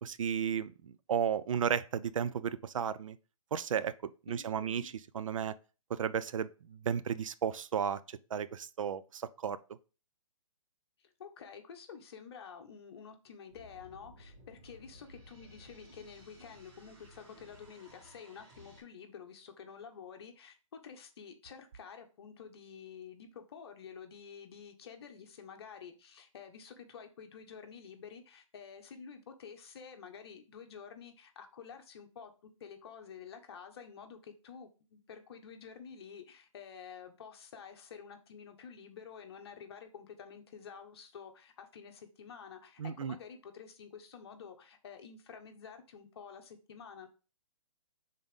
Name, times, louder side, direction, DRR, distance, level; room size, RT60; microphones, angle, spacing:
voice 1, 0.0-3.2 3.5-5.6 5.9-9.6 42.8-43.2, right 8 dB, 70° right, 0.5 m, -34 dB
voice 2, 4.3-4.9 11.0-47.1, left 6 dB, 50° left, 1.1 m, -50 dB
sound 1, 13.5-18.8, equal, 30° right, 2.4 m, -57 dB
5.4 x 3.8 x 5.2 m
hypercardioid pair, 160°, 17 cm